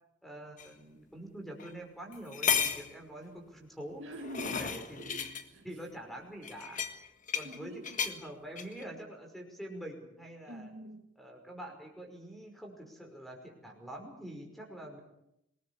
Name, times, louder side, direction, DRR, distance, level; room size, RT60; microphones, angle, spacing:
voice 1, 0.2-4.0 4.4-5.2 5.6-6.8 7.3-10.7 11.2-15.0, right 1 dB, ahead, 5.4 m, -46 dB
sound 1, 0.6-0.7 1.6-1.7 2.1-2.9 3.9-5.4 6.4-7.6 7.8-8.2 8.6-8.8, left 7 dB, 40° left, 1.7 m, -33 dB
voice 2, 4.0-5.7 7.4-7.9 10.4-11.1, equal, 75° right, 1.8 m, -46 dB
26.5 x 20.0 x 7.2 m
head